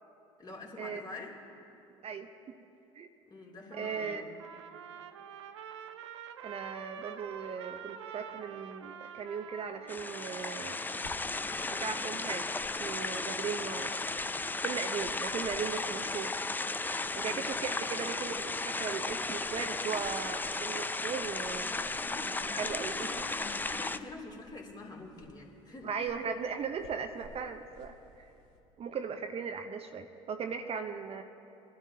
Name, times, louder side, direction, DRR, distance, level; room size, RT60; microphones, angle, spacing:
voice 1, 0.4-1.4 3.2-4.3 15.1-15.2 17.2-17.5 21.6-25.9, left 3 dB, 30° left, -2 dB, 2.8 m, -46 dB
voice 2, 3.7-4.2 6.4-10.8 11.7-14.0 14.6-16.3 17.1-21.7 22.6-23.1 25.8-28.3 28.8-31.2, right 6 dB, 45° right, 6 dB, 0.7 m, -38 dB
Trumpet, 3.7-10.8, right 8 dB, 90° right, 0.5 m, -46 dB
sound 1, 9.9-24.0, left 3 dB, 10° left, 0.5 m, -35 dB
sound 2, 11.0-28.6, left 1 dB, 80° left, 1.8 m, -58 dB
22.5 x 11.5 x 2.8 m, 2.8 s
hypercardioid pair, 65°, 15 cm